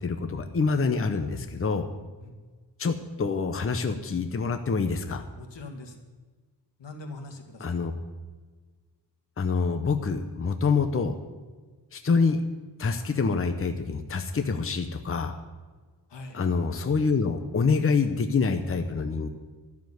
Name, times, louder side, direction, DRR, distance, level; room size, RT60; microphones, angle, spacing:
voice 1, 0.0-1.9 2.8-5.2 7.6-7.9 9.4-11.1 11.9-12.4 12.8-15.4 16.3-19.3, left 4 dB, 30° left, 7 dB, 0.9 m, -26 dB
voice 2, 5.3-6.0 6.8-7.8 16.1-16.4, left 2 dB, 80° left, 3 dB, 2.1 m, -42 dB
13.0 x 7.1 x 9.5 m, 1.4 s
wide cardioid pair, 135°, 42 cm